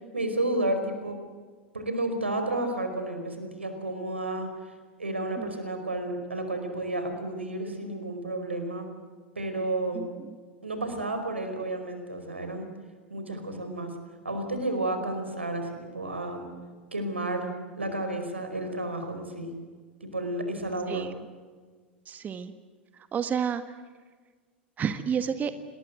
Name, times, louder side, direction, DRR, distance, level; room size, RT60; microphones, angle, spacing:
voice 1, 0.1-1.2 1.7-4.5 5.0-8.9 9.3-10.1 10.6-12.7 13.1-13.9 14.2-16.5 16.9-19.6 20.0-21.1, right 1 dB, 85° right, 7 dB, 4.9 m, -31 dB
voice 2, 9.9-10.3 20.9-21.1 22.1-22.5 23.1-23.6 24.8-25.5, right 7 dB, 25° right, 10 dB, 1.6 m, -30 dB
28.5 x 21.0 x 7.9 m, 1.5 s
figure-of-eight pair, 85°, 6 cm